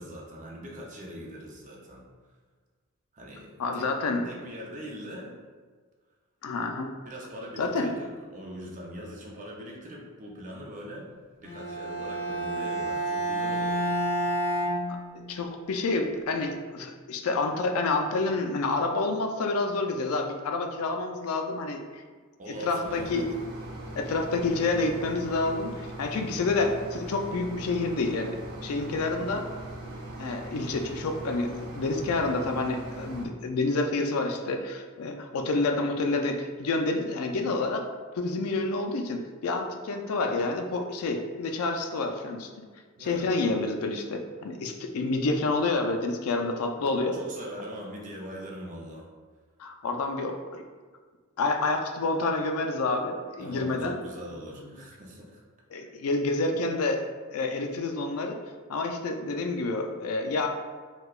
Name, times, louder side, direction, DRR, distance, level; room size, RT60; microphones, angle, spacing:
voice 1, 0.0-2.0 3.1-3.9 4.2-5.3 7.0-11.1 11.4-14.4 22.4-23.3 43.0-43.3 47.1-49.0 53.4-55.4, equal, 35° right, -2 dB, 0.6 m, -41 dB
voice 2, 3.6-4.3 6.4-6.9 7.6-7.9 14.9-22.0 22.6-23.3 24.0-29.5 30.2-37.8 38.2-42.5 43.0-47.2 49.6-50.6 51.4-54.0 55.7-57.0 57.3-58.4 58.7-60.5, left 3 dB, 75° left, 5 dB, 0.4 m, -28 dB
Bowed string instrument, 11.4-15.5, right 1 dB, 55° left, 0.9 m, -30 dB
sound 1, 22.8-33.3, right 1 dB, 80° right, 0.6 m, -40 dB
4.5 x 2.2 x 2.3 m, 1.5 s
head